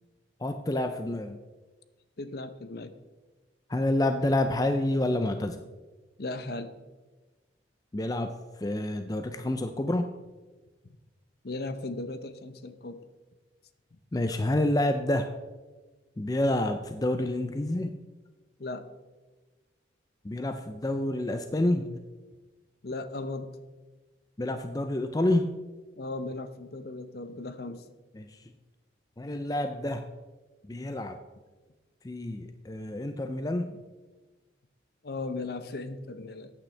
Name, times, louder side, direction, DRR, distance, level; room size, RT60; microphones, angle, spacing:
voice 1, 0.4-1.4 3.7-5.6 7.9-8.3 8.6-10.1 14.1-15.3 16.2-18.0 20.2-22.0 24.4-25.5 28.2-28.4 29.2-30.1 30.7-31.2 32.0-33.7, left 1 dB, 20° left, 7 dB, 0.4 m, -28 dB
voice 2, 2.2-2.9 6.2-6.7 11.4-13.0 18.6-18.9 22.8-23.5 26.0-27.8 35.0-36.5, left 2 dB, 55° left, 11 dB, 0.7 m, -37 dB
14.0 x 9.0 x 3.3 m, 1.2 s
head